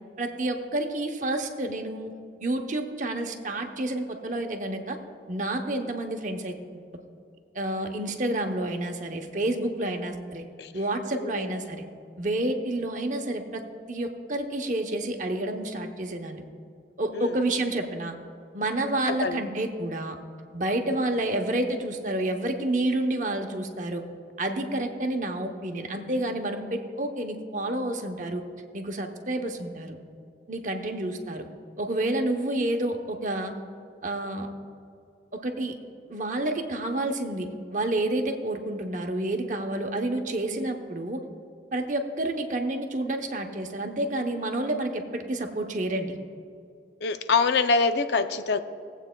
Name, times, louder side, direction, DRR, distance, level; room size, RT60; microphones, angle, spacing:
voice 1, 0.2-2.1 2.4-5.0 5.3-6.9 7.5-10.4 10.7-11.8 12.2-13.6 13.9-16.4 17.0-18.1 18.5-20.2 20.5-24.0 24.4-28.4 28.7-30.0 30.5-31.5 31.8-33.5 34.0-34.5 35.3-35.7 36.1-41.2 41.7-46.2, right 1 dB, 45° right, 5 dB, 0.8 m, -29 dB
voice 2, 11.1-11.5 17.1-17.4 19.1-19.4 47.0-48.6, left 4 dB, 70° left, 9 dB, 0.5 m, -25 dB
20.0 x 8.1 x 2.2 m, 2.4 s
head